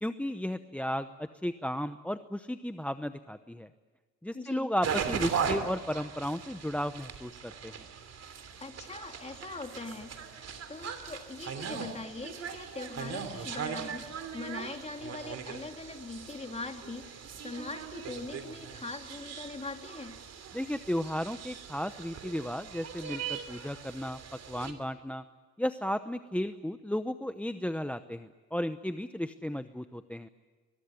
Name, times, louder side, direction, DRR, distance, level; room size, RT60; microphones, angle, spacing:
voice 1, 0.0-3.7 4.2-7.7 20.5-24.2 24.5-25.2 25.6-30.3, equal, 5° left, 11 dB, 0.8 m, -34 dB
voice 2, 4.3-4.7 8.6-10.2 10.7-20.2, left 3 dB, 20° left, 4 dB, 3.1 m, -42 dB
sound 1, 4.8-24.7, right 6 dB, 55° right, 3.2 m, -39 dB
23.5 x 21.5 x 9.8 m, 1.4 s
cardioid pair, 90°, 30 cm